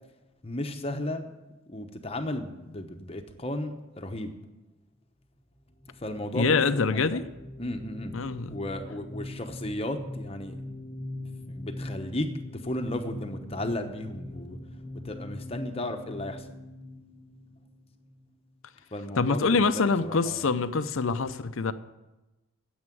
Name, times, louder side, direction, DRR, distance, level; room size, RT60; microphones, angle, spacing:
voice 1, 0.4-1.3 1.7-4.4 5.9-7.2 7.6-8.1 8.5-10.6 11.5-12.3 12.6-14.6 15.0-16.5 18.9-20.5, left 1 dB, 25° left, 0.9 m, -34 dB
sound 1, 5.8-18.3, left 1 dB, 5° left, 1.2 m, -41 dB
voice 2, 6.3-7.2 8.1-8.6 19.2-21.7, left 4 dB, 70° left, 0.6 m, -25 dB
9.7 x 8.0 x 9.2 m
head